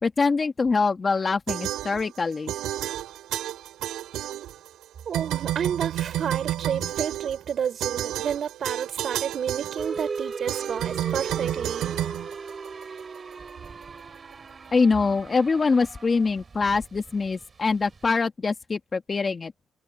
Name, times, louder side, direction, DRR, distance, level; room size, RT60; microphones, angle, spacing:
voice 1, 0.0-2.5 14.7-19.5, left 4 dB, 35° left, 1.9 m, -24 dB
sound 1, 1.5-2.2 2.5-4.8 5.1-13.0, right 13 dB, 85° right, 4.1 m, -31 dB
voice 2, 5.1-12.0, right 8 dB, 60° right, 4.9 m, -30 dB
sound 2, 9.8-18.0, right 5 dB, 35° right, 5.0 m, -37 dB
cardioid pair, 90°, 0 cm